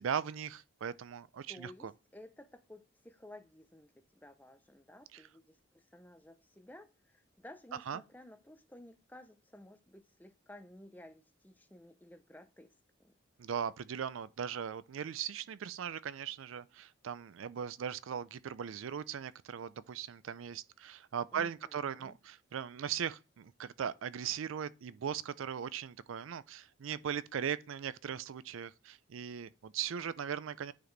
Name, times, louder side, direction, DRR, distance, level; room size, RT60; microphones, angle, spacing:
voice 1, 0.0-1.9 5.1-5.2 7.9-8.0 13.4-30.7, right 8 dB, 80° right, 0.4 m, -39 dB
voice 2, 1.5-12.7 13.0-13.1 21.3-22.2, left 1 dB, 10° left, 0.6 m, -55 dB
9.5 x 4.1 x 3.2 m
head